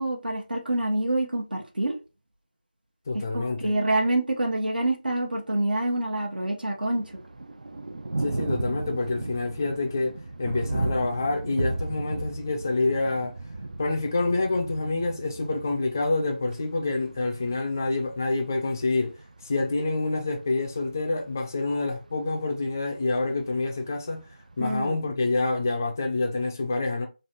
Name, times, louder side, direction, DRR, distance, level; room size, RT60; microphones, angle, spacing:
voice 1, 0.0-2.0 3.1-7.2 24.6-25.0, right 1 dB, 90° right, 1.0 m, -27 dB
voice 2, 3.1-3.7 8.2-13.3 13.8-24.2 24.6-27.1, left 3 dB, 20° left, 0.3 m, -27 dB
Thunder, 6.9-24.9, right 2 dB, 55° right, 0.4 m, -36 dB
3.2 x 2.4 x 2.8 m
figure-of-eight pair, 170°, 5 cm